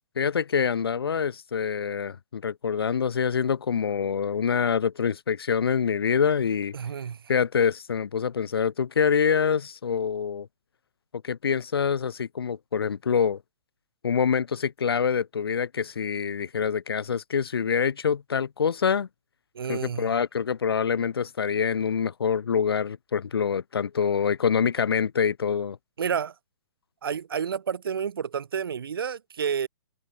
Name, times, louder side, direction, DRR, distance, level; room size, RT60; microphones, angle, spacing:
voice 1, 0.2-6.7 7.3-10.5 11.2-13.4 14.0-19.1 19.7-25.8, left 6 dB, 85° left, 2.9 m, -25 dB
voice 2, 6.7-7.3 19.5-20.1 26.0-26.3 27.0-29.7, right 7 dB, 70° right, 3.3 m, -30 dB
hypercardioid pair, 170°, 12 cm